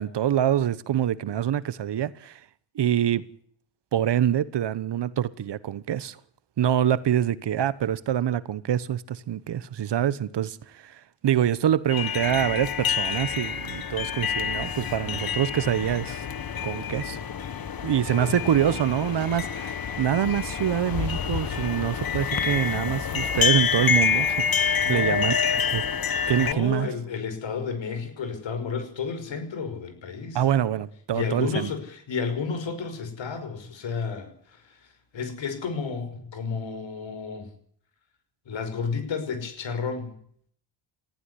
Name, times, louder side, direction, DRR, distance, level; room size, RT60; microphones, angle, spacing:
voice 1, 0.0-2.4 2.7-3.2 3.9-6.2 6.6-16.3 16.6-17.2 17.8-25.9 26.3-26.9 30.3-31.7, right 10 dB, 60° right, 1.2 m, -25 dB
sound 1, 11.9-26.5, left 7 dB, 50° left, 1.6 m, -27 dB
voice 2, 24.8-25.3 25.8-26.0 26.4-30.4 31.1-37.5 38.5-40.1, left 5 dB, 75° left, 5.7 m, -32 dB
19.5 x 15.0 x 9.8 m
cardioid pair, 95°, 46 cm